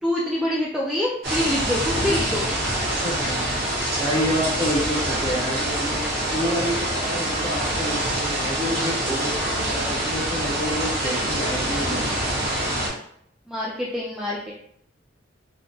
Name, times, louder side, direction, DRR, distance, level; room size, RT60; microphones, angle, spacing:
voice 1, 0.0-2.5 13.5-14.5, left 1 dB, 5° right, -6 dB, 0.4 m, -25 dB
sound 1, 1.2-12.9, right 1 dB, 55° right, 1.2 m, -25 dB
voice 2, 3.0-3.5 4.0-6.0 6.3-12.1, equal, 25° left, -5 dB, 1.0 m, -28 dB
3.3 x 2.1 x 2.8 m, 0.68 s
head